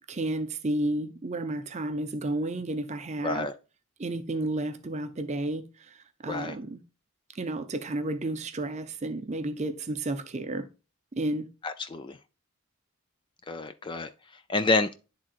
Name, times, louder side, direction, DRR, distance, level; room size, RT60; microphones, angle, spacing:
voice 1, 0.1-3.5 4.0-6.8 7.3-10.7 11.1-11.5, right 2 dB, 30° right, 0.6 m, -32 dB
voice 2, 3.2-3.5 6.3-6.5 11.6-12.2 13.5-14.1 14.5-15.0, left 3 dB, 20° left, 0.3 m, -28 dB
10.5 x 3.7 x 2.5 m
head